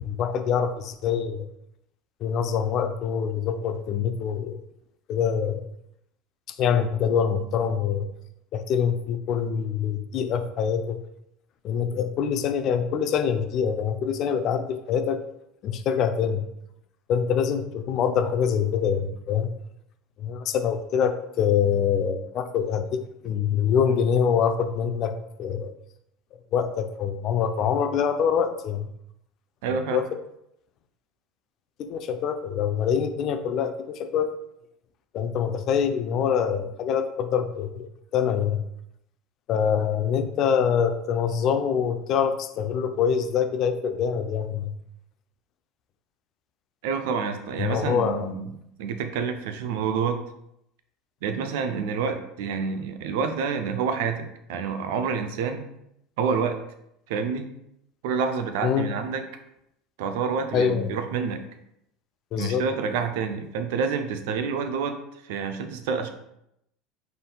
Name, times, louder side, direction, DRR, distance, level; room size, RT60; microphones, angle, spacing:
voice 1, 0.0-1.5 2.2-4.6 5.1-5.7 6.6-8.1 8.5-11.0 11.6-15.2 15.6-16.4 17.1-19.5 20.2-25.1 25.4-25.7 26.5-28.9 29.9-30.0 31.8-34.3 35.1-38.6 39.5-44.7 47.6-48.3 58.6-58.9 60.5-60.9 62.3-62.6, left 7 dB, 50° left, 8 dB, 0.5 m, -25 dB
voice 2, 29.6-30.0 46.8-48.5 48.8-50.2 51.2-55.6 56.2-56.6 57.1-57.5 58.0-59.2 60.0-61.4 62.4-65.0 65.2-66.1, right 6 dB, 65° right, 7 dB, 0.5 m, -28 dB
5.2 x 3.9 x 2.3 m, 0.78 s
hypercardioid pair, 75°, 0 cm